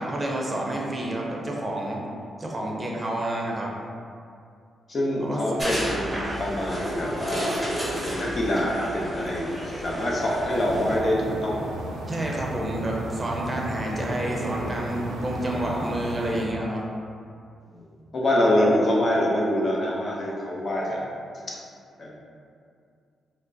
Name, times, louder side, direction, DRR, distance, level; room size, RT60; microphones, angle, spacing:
voice 1, 0.0-2.0 2.4-3.7 5.2-5.4 12.1-16.8, right 1 dB, 25° right, -2 dB, 0.6 m, -29 dB
voice 2, 4.9-9.5 9.8-11.7 15.5-15.9 17.7-21.0 21.5-21.6 22.0-22.2, left 1 dB, 50° left, -3 dB, 0.7 m, -25 dB
sound 1, 5.6-11.0, equal, ahead, 0.9 m, -32 dB
sound 2, 10.5-16.4, right 1 dB, 85° right, 0.3 m, -34 dB
4.3 x 2.0 x 2.6 m, 2.4 s
supercardioid pair, 55°, 0 cm